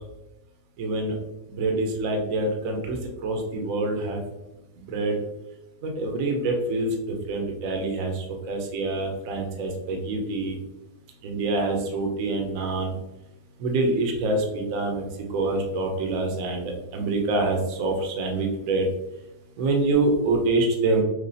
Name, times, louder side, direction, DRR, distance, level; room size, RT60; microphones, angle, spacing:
voice 1, 0.8-1.2 1.6-4.2 4.9-5.1 5.8-10.6 11.2-12.9 13.6-15.0 15.3-18.9 19.6-21.0, right 2 dB, 60° right, 2 dB, 1.1 m, -26 dB
6.2 x 2.4 x 2.7 m, 0.96 s
omnidirectional pair, 1.8 m